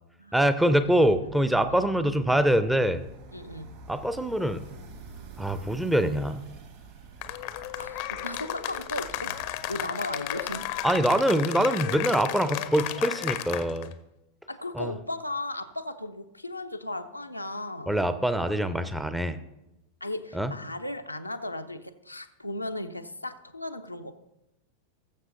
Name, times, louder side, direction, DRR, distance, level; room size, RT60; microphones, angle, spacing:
voice 1, 0.3-3.0 3.9-4.6 5.4-6.4 10.8-13.9 14.7-14.9 17.9-19.4 20.3-20.5, right 1 dB, 5° right, 11 dB, 0.6 m, -24 dB
sound 1, 0.8-11.2, right 4 dB, 50° right, 2.2 m, -47 dB
voice 2, 3.3-3.7 7.8-9.3 9.7-10.7 11.8-11.9 14.5-17.9 20.0-24.2, left 1 dB, 85° left, 6 dB, 0.6 m, -36 dB
Cheering / Applause, 7.2-13.9, left 14 dB, 45° left, 0.6 m, -33 dB
20.0 x 7.4 x 2.7 m, 0.93 s
figure-of-eight pair, 90°, 0 cm